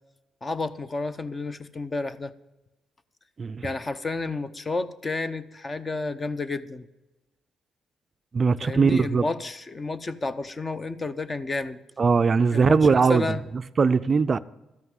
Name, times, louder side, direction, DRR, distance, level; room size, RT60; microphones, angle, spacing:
voice 1, 0.4-2.3 3.6-6.9 8.6-11.8 12.5-13.4, left 3 dB, 30° left, 0.7 m, -31 dB
voice 2, 8.3-9.2 12.0-13.3 13.8-14.4, right 5 dB, 40° right, 0.4 m, -20 dB
13.0 x 5.7 x 9.5 m
cardioid pair, 90°, 0 cm